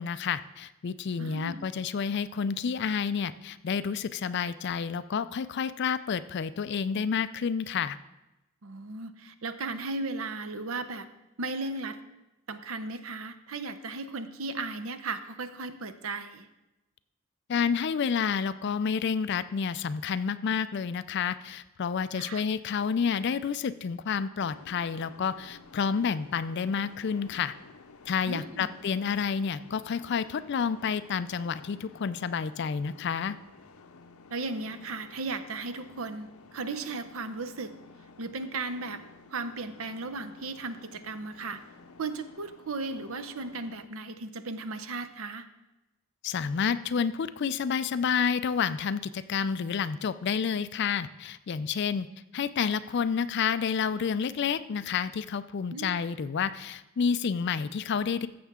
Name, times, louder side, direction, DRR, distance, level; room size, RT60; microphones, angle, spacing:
voice 1, 0.0-8.0 17.5-27.5 28.1-33.4 46.2-52.1 52.3-58.3, left 6 dB, 50° left, 14 dB, 0.3 m, -29 dB
voice 2, 1.2-1.7 8.6-11.1 11.4-12.0 12.5-16.5 22.1-22.4 28.3-28.7 34.3-37.7 38.2-39.0 39.3-41.6 42.0-45.5 55.7-56.0, right 3 dB, 70° right, 11 dB, 0.7 m, -36 dB
sound 1, 24.4-43.9, left 4 dB, 85° left, 0.6 m, -53 dB
14.5 x 7.2 x 3.6 m, 0.98 s
head